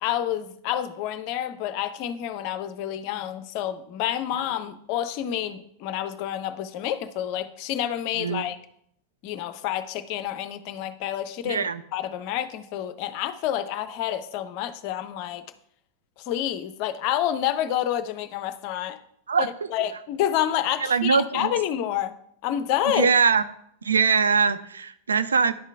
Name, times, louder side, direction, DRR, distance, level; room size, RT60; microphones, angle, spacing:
voice 1, 0.0-8.6 9.2-15.4 16.2-19.0 19.4-22.1 22.4-23.1, left 11 dB, 45° left, 0.5 m, -28 dB
voice 2, 8.2-8.5 11.4-11.8 19.3-19.5 20.8-21.5 22.9-23.4 23.8-25.5, right 5 dB, 70° right, 0.4 m, -22 dB
10.5 x 3.7 x 3.5 m
figure-of-eight pair, 90°, 0 cm